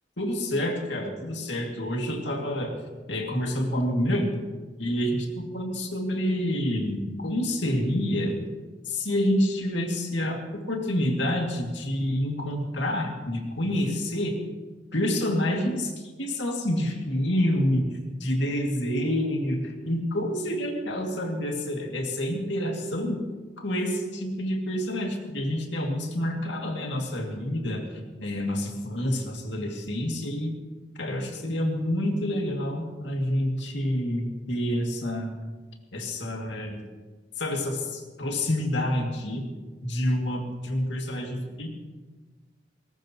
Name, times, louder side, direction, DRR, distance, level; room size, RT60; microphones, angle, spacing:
voice 1, 0.2-2.7 3.1-4.3 4.8-8.3 8.9-14.3 14.9-17.9 18.2-23.2 23.6-27.8 28.2-30.5 31.0-35.3 35.9-36.8 37.4-39.4 39.8-41.7, left 1 dB, 70° left, 1 dB, 2.4 m, -28 dB
20.5 x 18.5 x 3.1 m, 1.3 s
head